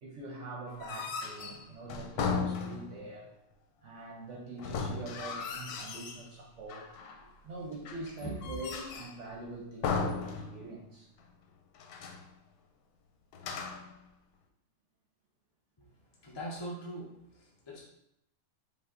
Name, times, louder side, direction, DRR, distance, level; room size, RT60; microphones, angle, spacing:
voice 1, 0.0-3.3 3.8-6.9 7.4-11.1, right 2 dB, 60° right, -1 dB, 1.0 m, -44 dB
sound 1, 0.7-3.1 4.6-6.3 6.7-7.3 7.8-9.2 9.8-10.9 11.2-11.3 11.7-12.3 13.3-14.0, left 5 dB, 85° left, 1.1 m, -36 dB
voice 2, 8.2-8.5 15.8-17.8, right 1 dB, 25° left, -4 dB, 0.6 m, -42 dB
5.4 x 2.4 x 3.6 m, 0.81 s
omnidirectional pair, 1.6 m